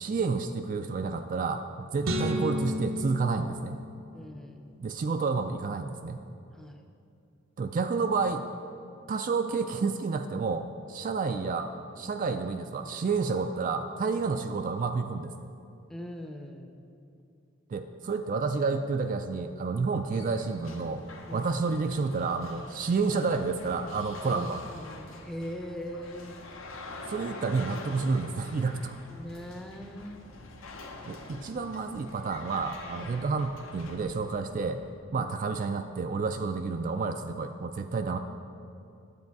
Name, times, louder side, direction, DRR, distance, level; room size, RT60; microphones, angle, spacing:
voice 1, 0.0-3.8 4.8-6.2 7.6-8.5 9.1-11.7 12.0-15.3 17.7-21.0 21.3-24.6 27.1-29.0 31.1-34.8 35.1-38.2, right 4 dB, 40° right, 6 dB, 0.3 m, -30 dB
sound 1, 2.0-4.4, equal, 80° right, 1.0 m, -32 dB
voice 2, 4.1-4.7 6.5-6.8 15.9-16.9 21.3-21.5 24.2-26.4 29.1-30.2 33.0-33.1 35.1-35.3, equal, ahead, 4 dB, 0.6 m, -41 dB
sound 2, 19.8-35.0, left 2 dB, 70° left, 0.9 m, -46 dB
9.7 x 7.7 x 4.6 m, 2.6 s
head